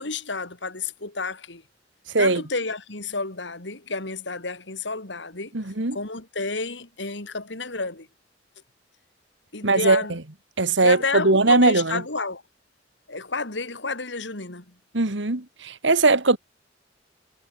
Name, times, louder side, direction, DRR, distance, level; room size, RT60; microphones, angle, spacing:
voice 1, 0.0-1.6 2.2-5.5 5.9-8.1 9.5-10.2 10.8-12.4 13.1-14.7, left 3 dB, 65° left, 3.2 m, -31 dB
voice 2, 5.5-6.0 9.6-10.2 10.6-12.0 14.9-16.4, right 3 dB, 70° right, 2.0 m, -20 dB
head